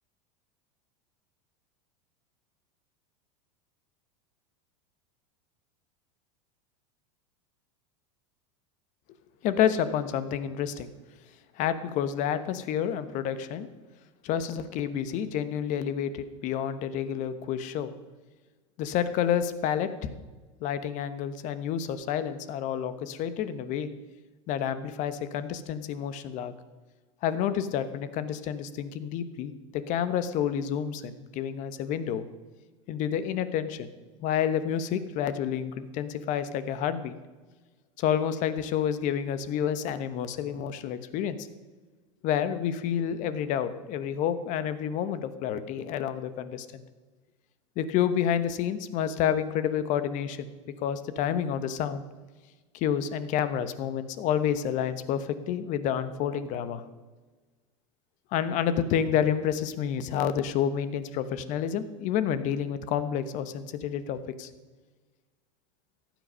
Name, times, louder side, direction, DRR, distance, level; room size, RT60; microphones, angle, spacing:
voice 1, 9.4-10.9 11.6-13.7 14.2-17.9 18.8-20.1 20.6-23.9 24.5-26.5 27.2-32.2 32.9-33.9 34.2-37.1 38.0-41.5 42.2-46.8 47.8-50.5 50.8-52.0 52.7-56.8 58.3-64.5, left 9 dB, 50° left, 13 dB, 1.1 m, -29 dB
14.5 x 9.2 x 5.5 m, 1.3 s
supercardioid pair, 115°, 17 cm